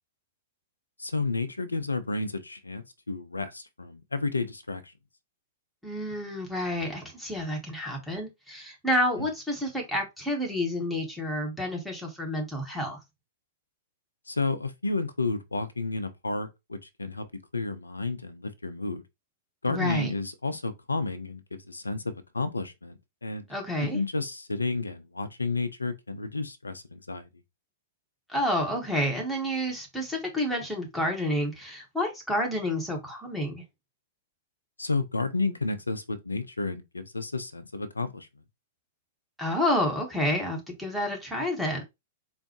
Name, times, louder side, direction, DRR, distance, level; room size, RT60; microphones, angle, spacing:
voice 1, 1.0-4.8 14.3-17.2 17.5-19.0 19.6-22.0 22.3-23.4 23.8-27.3 34.8-38.3, left 3 dB, 80° left, 0.5 m, -31 dB
voice 2, 5.8-13.0 19.7-20.1 23.5-24.0 28.3-33.6 39.4-41.8, equal, ahead, 1.0 m, -29 dB
3.9 x 2.1 x 2.9 m
figure-of-eight pair, 105°, 0 cm